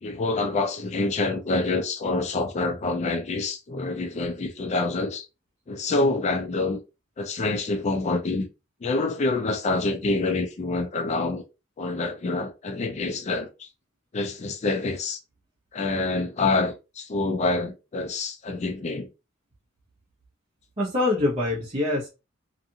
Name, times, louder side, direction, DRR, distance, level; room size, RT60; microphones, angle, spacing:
voice 1, 0.0-5.3 5.7-6.8 7.2-8.5 8.8-11.4 11.8-13.7 14.1-15.2 15.7-19.1, left 3 dB, 35° left, 0.4 m, -26 dB
voice 2, 20.8-22.1, left 2 dB, 35° right, 0.7 m, -24 dB
2.6 x 2.4 x 2.7 m
head